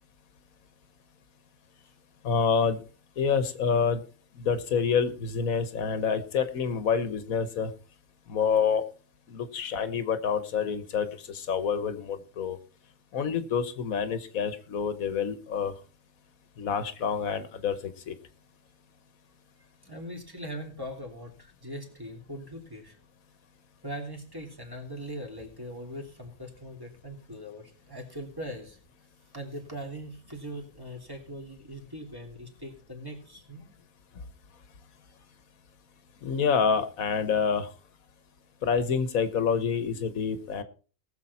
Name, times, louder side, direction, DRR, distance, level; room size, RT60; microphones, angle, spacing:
voice 1, 2.2-2.8 3.2-4.0 4.4-7.7 8.3-8.9 9.3-12.6 13.1-15.7 16.6-18.1 36.2-37.7 38.6-40.6, left 6 dB, 85° left, 12 dB, 1.5 m, -27 dB
voice 2, 19.8-23.0 23.8-28.8 29.3-33.6, equal, 15° right, 1 dB, 3.1 m, -41 dB
19.0 x 7.1 x 4.2 m, 0.37 s
omnidirectional pair, 1.4 m